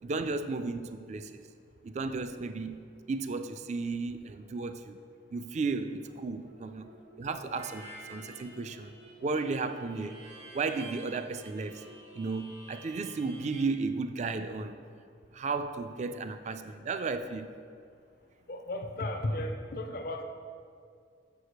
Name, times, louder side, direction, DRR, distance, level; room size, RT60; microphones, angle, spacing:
voice 1, 0.0-1.4 1.8-2.8 3.1-5.0 5.3-6.9 7.2-8.9 9.2-10.2 10.5-11.8 12.1-14.8 15.3-17.5, right 4 dB, 40° right, 9 dB, 0.4 m, -34 dB
sound 1, 6.4-12.3, right 2 dB, 55° right, 0.7 m, -55 dB
Harmonica, 7.6-13.6, right 1 dB, 75° right, 2.1 m, -50 dB
voice 2, 18.5-20.2, left 1 dB, 55° left, 5 dB, 0.5 m, -34 dB
6.5 x 4.8 x 6.5 m, 2.3 s
head